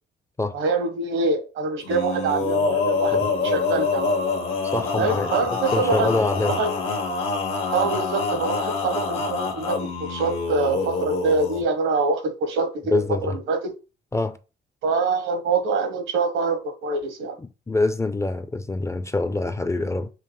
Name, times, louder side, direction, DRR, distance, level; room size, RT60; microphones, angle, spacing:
voice 1, 0.5-4.3 4.9-6.1 6.4-6.7 7.7-13.7 14.8-17.4, right 4 dB, 80° right, 1.1 m, -25 dB
Male singing, 1.8-11.6, left 4 dB, 80° left, 1.3 m, -26 dB
voice 2, 4.7-5.3 5.7-6.6 12.9-13.4 14.1-14.4 17.7-20.1, left 2 dB, 15° left, 0.4 m, -24 dB
5.5 x 2.1 x 3.1 m
cardioid pair, 90°, 20 cm